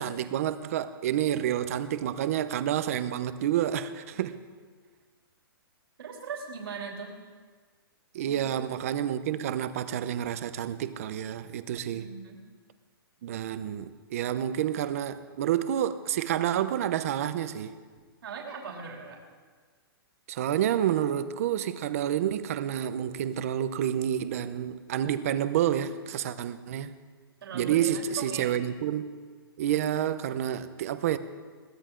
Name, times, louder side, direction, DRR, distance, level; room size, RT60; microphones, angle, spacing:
voice 1, 0.0-4.4 8.1-12.1 13.2-17.7 20.3-26.9 27.5-29.1 29.6-31.2, right 10 dB, 35° right, 0.7 m, -29 dB
voice 2, 6.0-7.2 8.2-8.5 11.7-12.4 18.2-19.2 27.4-28.6, right 5 dB, 70° right, 3.3 m, -40 dB
22.0 x 16.0 x 3.8 m
hypercardioid pair, 170°, 13 cm